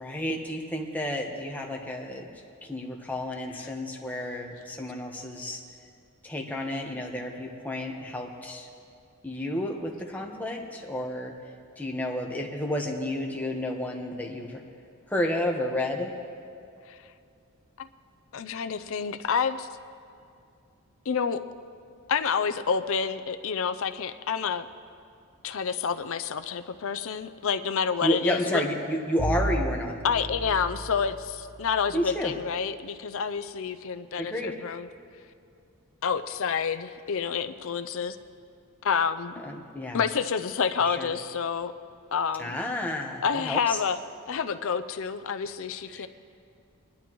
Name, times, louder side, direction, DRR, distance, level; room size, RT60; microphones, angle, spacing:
voice 1, 0.0-2.3 2.6-5.6 6.2-8.7 9.2-11.3 11.8-14.6 15.1-16.1 28.0-29.9 31.9-32.3 34.2-34.6 39.4-40.0 40.8-41.1 42.4-43.8 45.9-46.1, left 1 dB, 10° left, 0 dB, 1.1 m, -31 dB
voice 2, 18.3-19.7 21.1-21.4 22.1-24.6 25.4-28.6 30.0-34.9 36.0-38.2 38.8-39.3 39.9-41.7 42.1-42.6 43.2-44.0 44.3-46.1, left 6 dB, 60° left, 10 dB, 0.5 m, -28 dB
Bowed string instrument, 29.2-32.2, right 2 dB, 55° right, 0.9 m, -33 dB
21.0 x 11.5 x 3.1 m, 2.5 s
head